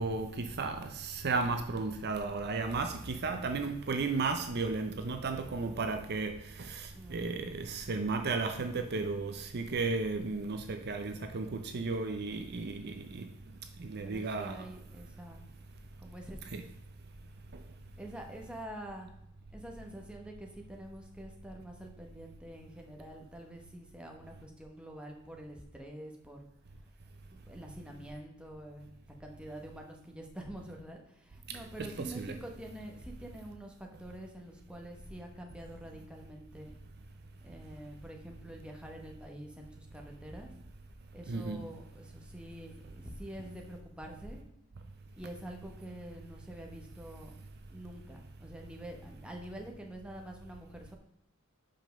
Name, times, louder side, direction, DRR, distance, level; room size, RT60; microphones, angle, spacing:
voice 1, 0.0-6.3 6.6-13.3 13.8-14.6 16.5-16.6 32.0-32.4 41.3-41.6, right 3 dB, 50° right, 7 dB, 0.6 m, -34 dB
voice 2, 6.9-7.5 14.0-15.5 16.0-16.4 18.0-19.1 19.5-26.4 27.3-28.9 29.2-36.7 37.4-40.5 41.1-44.5 45.2-47.4 47.7-50.9, right 1 dB, 5° right, 1 dB, 1.2 m, -46 dB
5.6 x 5.3 x 6.5 m, 0.79 s
head